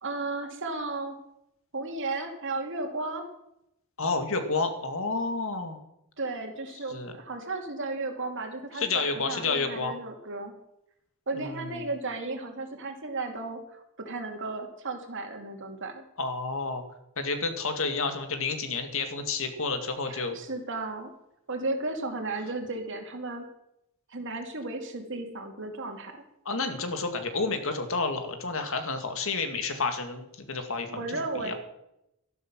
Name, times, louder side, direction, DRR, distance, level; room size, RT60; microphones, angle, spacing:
voice 1, 0.0-1.2 1.7-3.3 6.2-10.5 11.3-16.0 20.1-21.1 21.5-23.5 24.1-26.2 30.9-31.5, right 3 dB, 60° right, 4 dB, 2.4 m, -34 dB
voice 2, 4.0-5.8 6.9-7.1 8.7-9.9 11.4-11.8 16.2-16.8 17.2-20.4 26.5-31.5, left 4 dB, 65° left, 7 dB, 2.0 m, -30 dB
13.0 x 12.0 x 6.1 m, 0.82 s
head